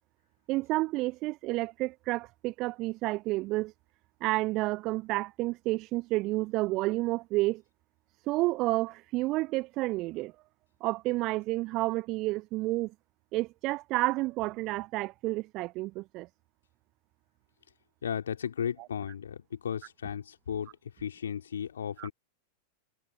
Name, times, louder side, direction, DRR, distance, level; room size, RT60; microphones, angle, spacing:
voice 1, 0.5-3.7 4.2-7.6 8.2-10.3 10.8-12.9 13.3-16.3 18.8-18.9 22.0-22.1, right 20 dB, 40° right, 0.9 m, -30 dB
voice 2, 18.0-20.7 21.0-22.1, left 8 dB, 65° left, 3.1 m, -35 dB
figure-of-eight pair, 90°, 0 cm